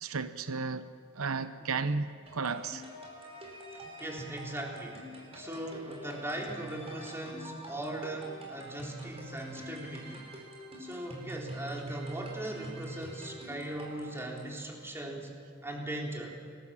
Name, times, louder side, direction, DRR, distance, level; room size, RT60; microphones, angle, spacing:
voice 1, 0.0-2.8 5.3-5.5, right 4 dB, 85° right, 0.8 m, -34 dB
sound 1, 2.3-14.6, right 1 dB, 30° right, 5.0 m, -45 dB
voice 2, 3.7-5.1 5.3-10.2 10.8-15.3 15.6-16.4, right 1 dB, 10° right, 4.0 m, -39 dB
27.5 x 19.5 x 7.5 m
head